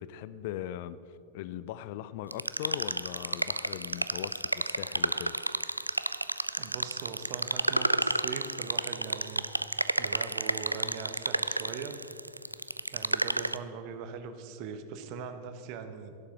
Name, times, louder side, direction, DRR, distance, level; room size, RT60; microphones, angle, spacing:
voice 1, 0.0-5.4, left 12 dB, 50° left, 15 dB, 0.5 m, -40 dB
sound 1, 2.3-13.6, right 1 dB, 85° right, 0.3 m, -31 dB
voice 2, 6.6-9.4 10.0-12.0 12.9-16.1, right 6 dB, 45° right, 9 dB, 1.2 m, -41 dB
13.5 x 11.5 x 6.4 m, 2.4 s
figure-of-eight pair, 90°, 0 cm